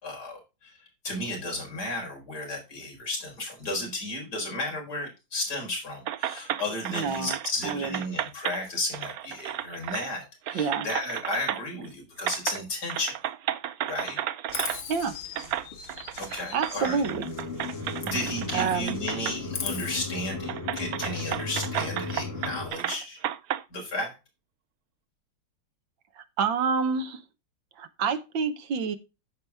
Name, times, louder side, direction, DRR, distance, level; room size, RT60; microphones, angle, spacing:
voice 1, 0.0-13.1 13.9-14.2 16.2-17.0 18.0-23.2 23.7-24.2, left 2 dB, 50° left, 0 dB, 4.9 m, -33 dB
sound 1, 6.1-8.6 8.9-10.2 10.5-11.9 12.2-12.6 12.9-14.8 15.4-19.4 19.8-19.9 20.5-23.6, right 11 dB, 85° right, 0.8 m, -33 dB
voice 2, 6.9-7.4 7.6-7.9 10.5-10.9 14.9-15.2 16.5-17.3 18.5-19.0 26.4-27.2 27.8-29.0, right 5 dB, 65° right, 10 dB, 1.8 m, -27 dB
Chirp tweet, 14.5-18.5 18.8-20.0, left 6 dB, 65° left, 2.3 m, -39 dB
sound 2, 16.8-22.7, left 3 dB, 30° left, 2.7 m, -35 dB
14.5 x 4.8 x 3.5 m, 0.27 s
omnidirectional pair, 2.3 m